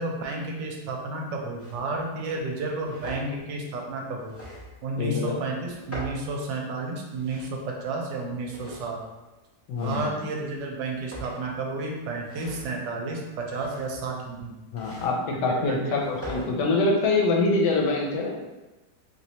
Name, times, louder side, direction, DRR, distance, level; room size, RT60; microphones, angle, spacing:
voice 1, 0.0-4.3 4.8-9.0 9.8-14.5 15.3-16.0, right 3 dB, 85° right, 0 dB, 1.3 m, -31 dB
sound 1, 1.6-1.8 2.5-3.3 4.2-4.9 5.6-6.3 7.0-7.5 8.4-9.1 9.8-10.2 10.9-11.6 12.2-12.7 13.4-14.1 14.8-15.1 15.9-16.5, equal, 15° left, 0.4 m, -41 dB
voice 2, 5.0-5.4 9.7-10.2 14.7-18.4, left 3 dB, 75° left, 0 dB, 1.2 m, -25 dB
3.0 x 3.0 x 2.8 m, 1.1 s
omnidirectional pair, 1.9 m